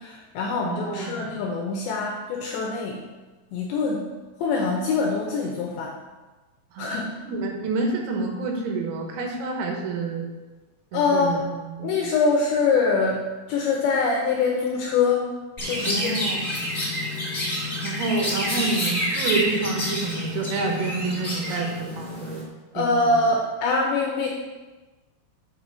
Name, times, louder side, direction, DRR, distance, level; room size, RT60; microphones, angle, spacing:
voice 1, 0.0-3.0 3.5-4.1 4.4-5.9 6.8-7.2 10.9-11.5 11.8-15.3 15.7-16.2 22.7-24.3, left 4 dB, 80° left, -1 dB, 2.6 m, -24 dB
voice 2, 0.6-1.3 6.7-6.9 7.2-10.3 10.9-12.0 15.8-16.5 17.8-22.4 22.8-23.2, right 3 dB, 85° right, 1 dB, 3.8 m, -28 dB
Chirp tweet, 15.6-22.4, left 1 dB, 20° left, 1.2 m, -28 dB
8.1 x 4.7 x 5.4 m, 1.2 s
omnidirectional pair, 6.0 m